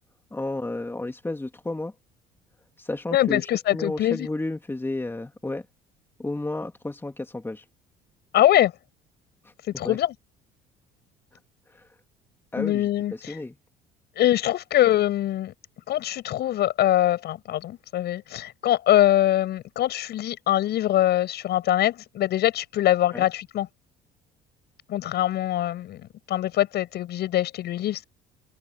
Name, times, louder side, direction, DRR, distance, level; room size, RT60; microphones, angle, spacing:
voice 1, 0.3-1.9 2.8-5.7 6.2-7.6 9.8-10.0 11.7-11.9 12.5-13.5 23.1-23.3, left 2 dB, 10° left, 2.7 m, -32 dB
voice 2, 3.1-4.3 8.3-8.7 9.8-10.1 12.6-13.4 14.2-15.5 15.9-23.7 24.9-26.0 26.3-28.0, left 13 dB, 65° left, 6.8 m, -23 dB
open air
supercardioid pair, 80°, 18 cm